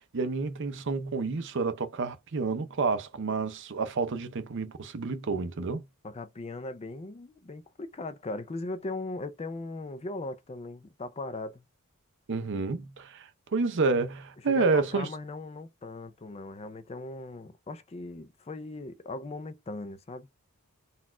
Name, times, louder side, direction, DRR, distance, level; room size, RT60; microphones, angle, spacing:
voice 1, 0.1-5.8 12.3-15.1, right 4 dB, 55° right, 0.6 m, -29 dB
voice 2, 6.0-11.6 14.5-20.3, left 2 dB, 30° left, 0.4 m, -38 dB
4.1 x 2.4 x 4.3 m
head